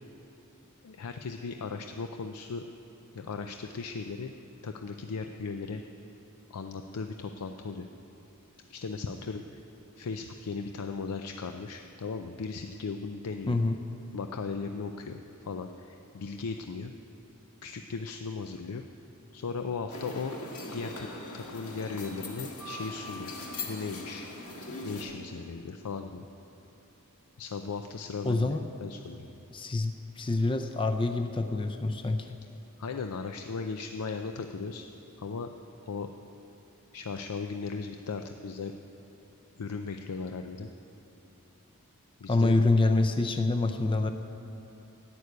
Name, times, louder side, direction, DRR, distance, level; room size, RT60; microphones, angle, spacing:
voice 1, 0.8-2.7 3.1-4.3 4.6-5.8 6.5-7.9 8.7-9.6 10.0-13.6 14.1-15.2 15.5-16.9 17.6-18.8 19.3-20.3 20.7-21.1 21.3-23.3 23.6-24.3 24.8-26.3 27.4-28.5 28.8-29.3 32.8-34.8 35.2-35.5 35.8-36.1 36.9-38.7 39.6-40.7 42.2-42.6, left 4 dB, 90° left, 6 dB, 0.5 m, -37 dB
voice 2, 13.5-13.8 28.2-28.6 29.5-32.3 42.3-44.1, left 2 dB, 25° left, 7 dB, 0.4 m, -26 dB
sound 1, 19.9-25.0, left 2 dB, 70° left, 1.7 m, -40 dB
11.0 x 8.3 x 9.3 m, 2.9 s
head